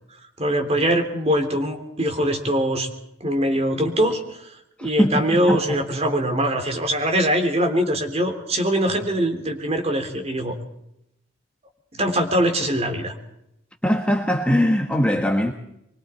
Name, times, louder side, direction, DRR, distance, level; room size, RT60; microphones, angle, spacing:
voice 1, 0.4-2.9 3.2-4.5 4.8-10.5 12.0-13.1, right 1 dB, 30° right, 3.3 m, -22 dB
voice 2, 4.8-5.8 13.8-15.5, equal, 5° left, 1.5 m, -21 dB
25.0 x 23.0 x 4.5 m
head